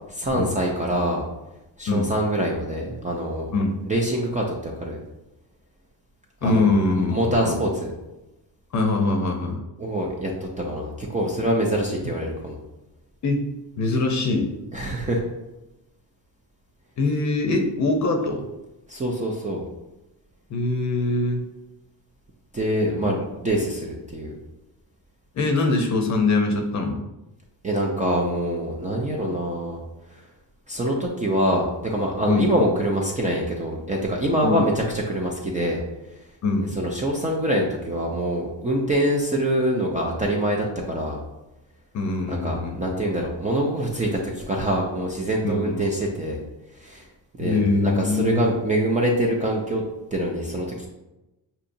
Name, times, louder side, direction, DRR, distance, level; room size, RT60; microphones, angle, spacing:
voice 1, 0.1-1.2 1.8-3.5 3.8-5.0 6.4-6.7 6.9-7.9 9.8-12.6 14.7-15.2 18.9-19.6 22.5-24.4 27.6-29.8 30.1-30.2 30.7-35.8 36.1-36.2 36.8-41.2 42.3-46.4 46.7-47.1 47.4-49.8 50.1-50.9, right 1 dB, 20° right, -2 dB, 0.4 m, -25 dB
voice 2, 6.4-7.6 8.7-9.6 13.2-14.5 17.0-18.4 20.5-21.4 22.9-23.1 25.3-27.0 32.3-32.5 34.4-34.6 36.4-36.7 41.9-42.8 45.4-45.8 47.4-48.4, left 3 dB, 40° left, 4 dB, 0.6 m, -23 dB
6.6 x 2.8 x 2.6 m, 0.97 s
cardioid pair, 175°, 44 cm